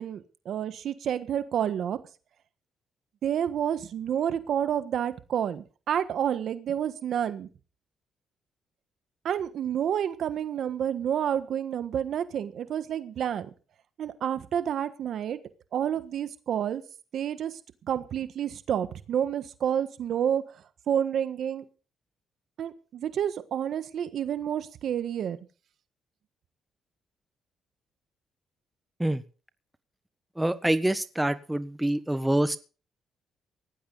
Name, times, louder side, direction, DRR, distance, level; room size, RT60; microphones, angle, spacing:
voice 1, 0.0-2.0 3.2-7.5 9.2-13.5 14.0-15.4 15.7-16.8 17.1-17.6 17.9-20.4 20.9-21.6 22.6-25.4, right 9 dB, 65° right, 11 dB, 1.4 m, -29 dB
voice 2, 30.3-32.6, right 1 dB, 10° right, 11 dB, 1.4 m, -26 dB
18.0 x 14.0 x 4.0 m, 0.36 s
cardioid pair, 90°, 0 cm